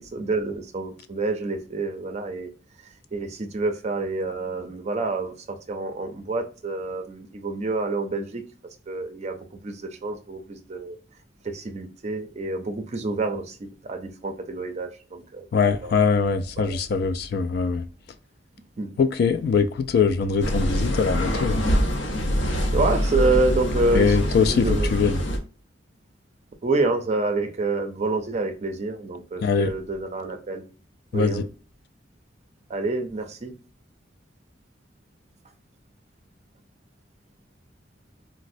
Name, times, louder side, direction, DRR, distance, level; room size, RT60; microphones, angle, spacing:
voice 1, 0.1-2.5 3.1-8.4 8.9-9.4 9.6-11.0 11.4-15.9 16.6-16.8 18.8-19.0 22.7-24.9 26.6-30.6 31.1-31.4 32.7-33.5, right 3 dB, 35° right, 0.4 m, -28 dB
voice 2, 15.5-17.8 19.0-21.6 23.9-25.2 29.4-29.7 31.1-31.5, left 5 dB, 55° left, 0.3 m, -22 dB
sound 1, 20.4-25.4, equal, 85° left, 0.7 m, -24 dB
4.0 x 2.0 x 2.5 m
head